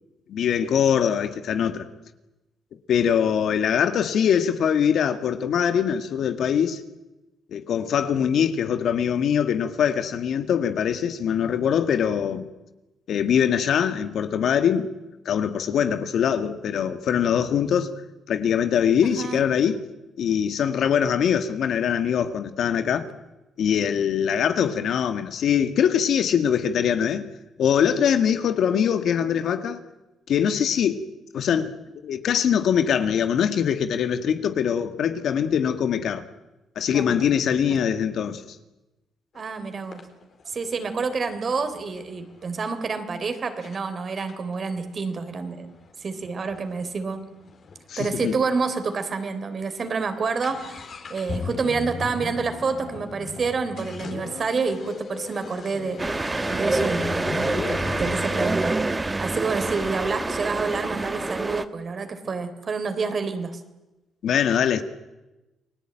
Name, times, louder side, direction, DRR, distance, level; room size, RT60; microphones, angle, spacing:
voice 1, 0.3-1.9 2.9-6.8 7.5-12.5 13.1-14.9 15.3-17.9 18.3-19.8 20.2-23.1 23.6-27.3 27.6-29.8 30.3-31.0 31.3-31.7 32.0-36.3 36.8-38.4 47.9-48.4 64.2-64.8, left 8 dB, 70° left, 1.9 m, -22 dB
voice 2, 36.9-37.3 37.7-37.8 39.3-40.0 40.5-45.7 46.0-47.2 48.0-50.8 51.1-63.6, right 4 dB, 45° right, 3.6 m, -28 dB
sound 1, 39.3-39.5 39.9-42.6 43.2-43.3 43.6-43.8 44.2-47.8 48.1-48.2 48.4-48.5 49.1-49.3 49.6-58.7, left 4 dB, 50° left, 4.3 m, -37 dB
sound 2, 56.0-61.6, right 2 dB, 20° right, 1.2 m, -27 dB
29.0 x 19.5 x 9.1 m
cardioid pair, 90°, 0 cm